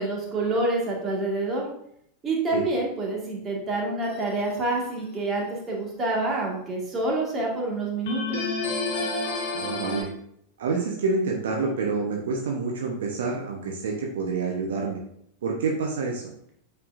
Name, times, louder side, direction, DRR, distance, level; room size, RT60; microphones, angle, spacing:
voice 1, 0.0-1.6 2.2-8.4, right 2 dB, 25° right, -2 dB, 2.0 m, -27 dB
sound 1, 4.0-4.7 8.1-10.0, left 3 dB, 55° left, 1.3 m, -29 dB
voice 2, 9.5-10.1 10.6-15.0 15.4-16.3, right 4 dB, 65° right, 0 dB, 0.9 m, -27 dB
8.4 x 4.6 x 2.7 m, 0.71 s
figure-of-eight pair, 90°, 0 cm